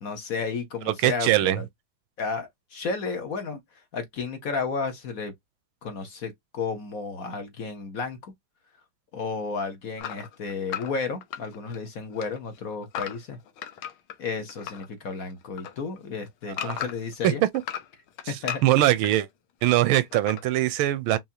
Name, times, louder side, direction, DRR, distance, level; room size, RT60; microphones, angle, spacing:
voice 1, 0.0-1.7 2.2-5.3 5.8-8.3 9.1-13.4 14.2-17.4 18.3-18.6, left 4 dB, 50° left, 1.3 m, -32 dB
voice 2, 0.9-1.6 16.6-16.8 17.2-17.3 18.2-18.3 18.6-19.3 19.6-21.2, right 14 dB, 85° right, 1.5 m, -22 dB
sound 1, 10.0-11.9 12.1-14.9 15.2-17.1 17.5-19.1 19.9-20.4, left 10 dB, 85° left, 1.7 m, -36 dB
5.6 x 3.0 x 2.8 m
omnidirectional pair, 2.2 m